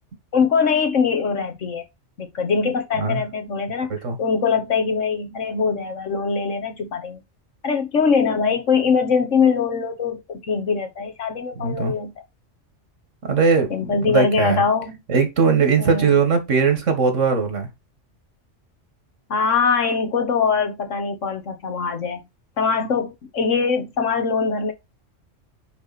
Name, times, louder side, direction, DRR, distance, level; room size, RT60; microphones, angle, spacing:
voice 1, 0.3-1.8 2.2-3.9 4.2-7.2 7.6-12.1 13.7-15.0 15.8-16.2 19.3-22.2 22.6-24.7, left 5 dB, 90° left, 1.8 m, -22 dB
voice 2, 11.6-11.9 13.2-14.6 15.1-17.7, right 5 dB, 85° right, 2.0 m, -20 dB
9.5 x 3.6 x 4.1 m
omnidirectional pair, 1.2 m